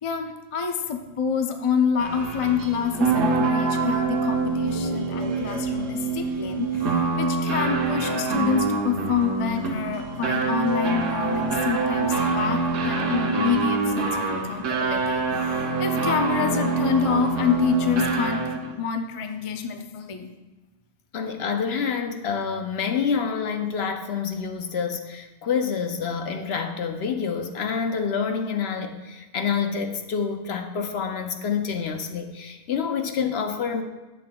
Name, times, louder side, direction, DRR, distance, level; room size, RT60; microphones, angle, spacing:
voice 1, 0.0-6.9 7.2-18.5 18.8-20.3, left 6 dB, 45° left, 6 dB, 0.4 m, -27 dB
sound 1, 2.0-18.7, right 4 dB, 80° right, 1.3 m, -25 dB
voice 2, 21.1-33.8, left 6 dB, 60° left, 6 dB, 0.8 m, -27 dB
11.0 x 7.7 x 2.3 m, 1.2 s
omnidirectional pair, 1.3 m